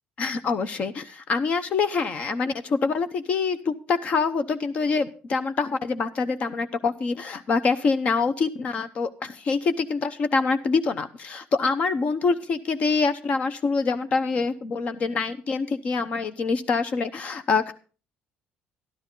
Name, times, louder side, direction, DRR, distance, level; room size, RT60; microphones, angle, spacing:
voice 1, 0.2-17.7, left 4 dB, 35° left, 11 dB, 0.8 m, -25 dB
13.0 x 12.0 x 3.8 m, 0.36 s
cardioid pair, 175°, 4 cm